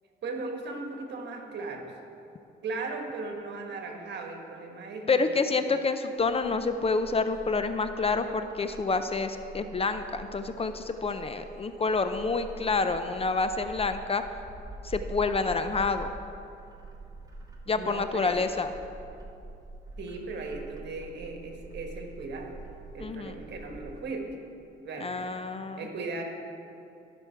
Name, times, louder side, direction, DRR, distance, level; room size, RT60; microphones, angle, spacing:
voice 1, 0.2-1.9 2.6-5.3 17.7-18.3 20.0-22.6 22.9-24.3 24.8-25.3 25.8-26.2, right 3 dB, 60° right, 3 dB, 1.5 m, -37 dB
voice 2, 5.1-14.2 14.8-16.1 17.7-18.7 23.0-23.3 25.0-25.9, left 4 dB, 30° left, 9 dB, 0.5 m, -28 dB
Bird, 6.2-23.9, right 2 dB, 20° right, 1.5 m, -45 dB
14.5 x 6.0 x 4.6 m, 2.7 s
cardioid pair, 90°, 20 cm